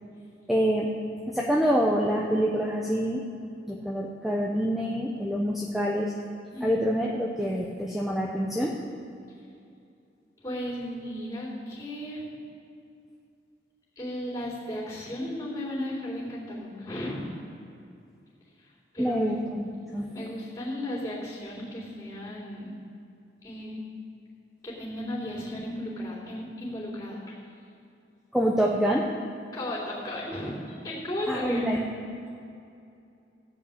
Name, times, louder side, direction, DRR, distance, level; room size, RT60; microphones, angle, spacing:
voice 1, 0.5-0.9 1.3-3.3 3.7-6.1 6.6-8.7 19.0-20.1 28.3-29.1 31.3-31.9, equal, ahead, -3 dB, 0.8 m, -26 dB
voice 2, 10.4-12.3 14.0-17.3 18.9-19.3 20.1-22.6 23.4-23.9 24.6-27.4 29.5-31.7, left 1 dB, 20° left, -5 dB, 3.6 m, -35 dB
14.5 x 5.3 x 8.6 m, 2.5 s
head